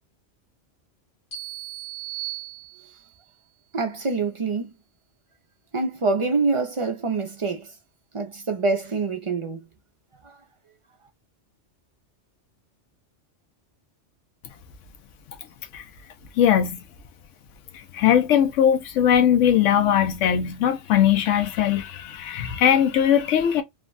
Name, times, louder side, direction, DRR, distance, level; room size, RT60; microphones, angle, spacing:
sound 1, 1.3-3.2, right 14 dB, 45° left, 1.5 m, -36 dB
voice 1, 3.7-4.7 5.7-7.7 8.1-9.7 10.2-10.4, right 4 dB, 50° right, 0.3 m, -25 dB
voice 2, 16.4-16.8 17.7-23.6, left 9 dB, 85° left, 0.9 m, -20 dB
3.3 x 2.1 x 2.4 m
omnidirectional pair, 1.2 m